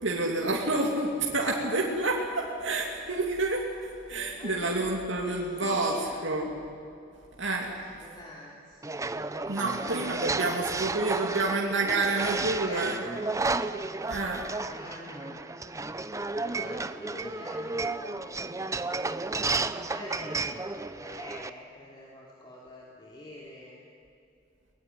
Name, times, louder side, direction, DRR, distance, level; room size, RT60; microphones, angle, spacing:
voice 1, 0.0-6.0 6.2-6.5 7.4-7.7 9.5-13.0 14.1-14.4, right 2 dB, 65° right, -2 dB, 2.9 m, -29 dB
voice 2, 4.2-4.9 5.1-6.1 7.7-8.8 9.5-11.4 11.8-13.6 14.6-15.7 16.4-18.8 19.3-23.8, left 1 dB, 25° left, -4 dB, 3.4 m, -44 dB
sound 1, 8.8-21.5, right 3 dB, 15° right, 0.7 m, -33 dB
23.0 x 20.0 x 9.5 m, 2.6 s
head